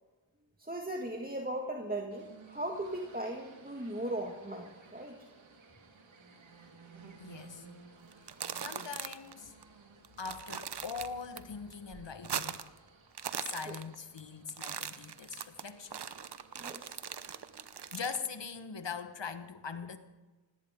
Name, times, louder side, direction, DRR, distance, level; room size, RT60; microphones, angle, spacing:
voice 1, 0.6-5.2 16.6-16.9, right 1 dB, 20° right, 2 dB, 1.9 m, -38 dB
sound 1, 2.1-17.9, right 4 dB, 90° right, 2.1 m, -58 dB
voice 2, 7.2-7.7 8.5-9.5 10.2-12.6 13.4-16.0 17.1-17.2 17.9-20.0, left 5 dB, 70° left, 9 dB, 1.4 m, -41 dB
sound 2, 8.1-9.3 9.6-9.7 10.0-11.4 11.7-12.8 13.1-14.2 14.5-18.3, right 7 dB, 60° right, 0.9 m, -40 dB
18.5 x 17.0 x 3.8 m, 1.3 s
cardioid pair, 40°, 45 cm